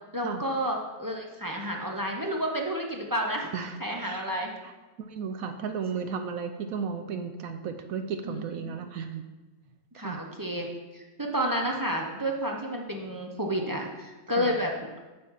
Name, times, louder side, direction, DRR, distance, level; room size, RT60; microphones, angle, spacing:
voice 1, 0.1-3.5 3.8-4.5 8.2-8.4 8.7-8.8 9.9-10.7 10.9-14.7, equal, 25° right, 0 dB, 0.4 m, -30 dB
voice 2, 3.5-4.3 4.6-4.7 5.0-9.2 9.9-10.2 14.4-14.5, right 6 dB, 65° right, 7 dB, 0.9 m, -34 dB
8.4 x 4.4 x 7.3 m, 1.2 s
omnidirectional pair, 1.9 m